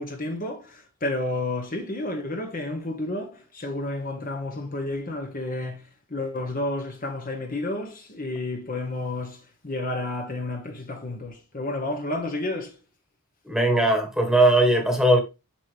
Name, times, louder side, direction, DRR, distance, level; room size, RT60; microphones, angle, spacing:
voice 1, 0.0-12.8, left 2 dB, 40° left, 1.2 m, -31 dB
voice 2, 13.4-15.2, right 1 dB, ahead, 1.5 m, -19 dB
7.3 x 5.9 x 3.4 m
head